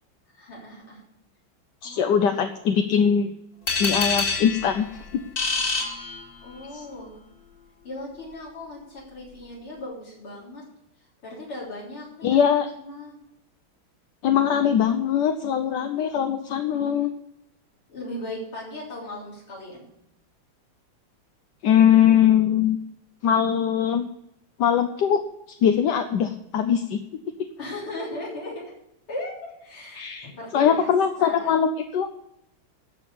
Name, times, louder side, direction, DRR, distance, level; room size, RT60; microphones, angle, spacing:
voice 1, 0.3-1.0 1.8-2.2 6.4-7.2 7.8-10.6 11.2-12.4 12.8-13.1 17.9-19.9 27.6-28.7 29.1-30.9 31.2-31.6, left 1 dB, 80° left, -5 dB, 4.6 m, -37 dB
voice 2, 1.8-3.3 3.8-4.8 6.7-6.8 12.2-12.7 14.2-17.1 21.6-22.8 23.2-24.1 24.6-25.2 25.6-27.0 29.9-32.1, left 8 dB, 65° left, 6 dB, 1.2 m, -21 dB
sound 1, 3.7-6.7, left 4 dB, 45° left, 2.9 m, -27 dB
11.5 x 6.9 x 8.3 m, 0.81 s
omnidirectional pair, 2.3 m